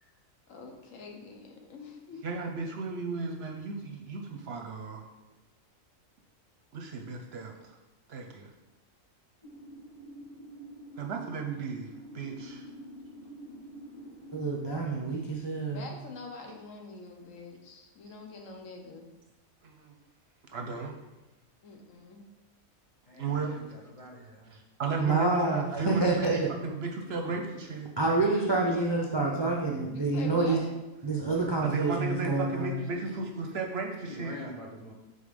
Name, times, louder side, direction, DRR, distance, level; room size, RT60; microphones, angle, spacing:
voice 1, 0.5-2.2 15.7-19.1 21.6-22.2 29.9-30.7, left 4 dB, 70° left, 2 dB, 1.2 m, -45 dB
voice 2, 2.2-5.0 6.7-7.5 8.1-8.5 11.0-11.9 12.1-12.6 19.6-19.9 20.5-20.9 23.2-23.6 24.5-27.9 31.6-34.4, right 4 dB, 60° right, 3 dB, 0.8 m, -35 dB
sound 1, 9.4-14.7, right 1 dB, 20° left, 1.9 m, -47 dB
voice 3, 14.3-15.9 25.0-26.5 28.0-30.6 31.0-32.7, right 3 dB, 35° right, -2 dB, 0.4 m, -27 dB
voice 4, 23.1-24.6 27.2-27.3 32.5-32.6 32.9-33.0 34.1-34.9, left 1 dB, 40° left, -1 dB, 0.5 m, -45 dB
5.3 x 4.2 x 5.1 m, 1.1 s
omnidirectional pair, 1.4 m